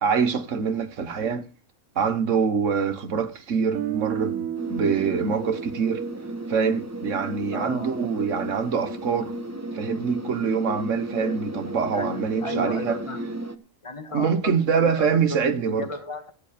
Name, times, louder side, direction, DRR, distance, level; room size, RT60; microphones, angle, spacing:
voice 1, 0.0-1.5 1.9-6.0 6.5-9.3 9.7-13.0 14.1-15.9, right 6 dB, 65° right, 1.5 m, -25 dB
Guitar, 3.7-7.7, right 10 dB, 80° right, 1.2 m, -34 dB
sound 1, 4.6-13.6, right 1 dB, 15° right, 1.0 m, -34 dB
voice 2, 7.5-8.0 11.8-13.3 13.8-16.3, left 2 dB, 20° left, 1.8 m, -35 dB
14.5 x 8.3 x 5.0 m
omnidirectional pair, 1.4 m